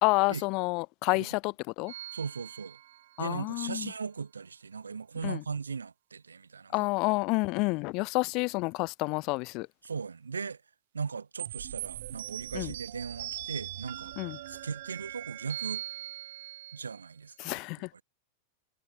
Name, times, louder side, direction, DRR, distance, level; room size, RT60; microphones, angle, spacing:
voice 1, 0.0-1.9 3.2-3.9 5.2-5.4 6.7-9.7 12.5-12.7 14.2-14.4 17.4-17.9, left 26 dB, 40° left, 1.6 m, -29 dB
sound 1, 1.9-3.4 11.4-17.1, right 15 dB, 55° right, 1.9 m, -41 dB
voice 2, 2.1-2.8 3.2-6.9 9.8-10.6 10.9-14.1 14.5-15.8 16.7-17.6 17.9-18.0, right 5 dB, 75° right, 1.9 m, -38 dB
figure-of-eight pair, 90°, 0 cm